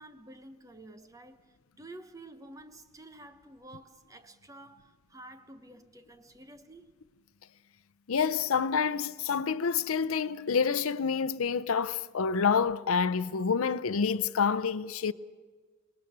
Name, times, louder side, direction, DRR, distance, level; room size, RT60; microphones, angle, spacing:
voice 1, 0.0-1.4 1.8-6.9, right 1 dB, 15° right, 0.9 m, -50 dB
voice 2, 8.1-15.1, left 6 dB, 85° left, 0.6 m, -28 dB
26.5 x 20.5 x 6.8 m
head